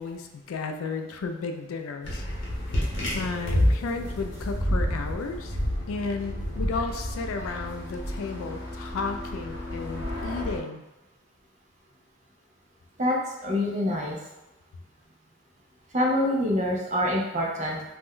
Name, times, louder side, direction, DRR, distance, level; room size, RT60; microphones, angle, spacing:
voice 1, 0.0-2.3 3.1-5.6 5.9-10.8, left 4 dB, 85° left, 6 dB, 0.3 m, -33 dB
sound 1, 2.0-10.6, equal, 60° left, 0.8 m, -30 dB
voice 2, 13.4-14.2 15.9-17.8, left 1 dB, 35° right, -2 dB, 0.5 m, -25 dB
2.5 x 2.2 x 3.5 m, 1.0 s
head